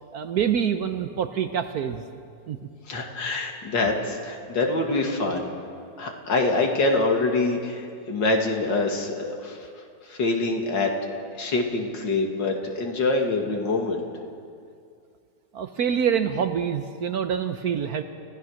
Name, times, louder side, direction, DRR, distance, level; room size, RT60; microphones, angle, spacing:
voice 1, 0.1-2.0 2.5-2.6 15.5-18.0, right 8 dB, 65° right, 8 dB, 1.2 m, -26 dB
voice 2, 2.9-5.5 6.0-10.9 11.4-14.0, left 2 dB, 80° left, 2 dB, 2.9 m, -25 dB
29.0 x 15.5 x 6.4 m, 2.3 s
omnidirectional pair, 1.9 m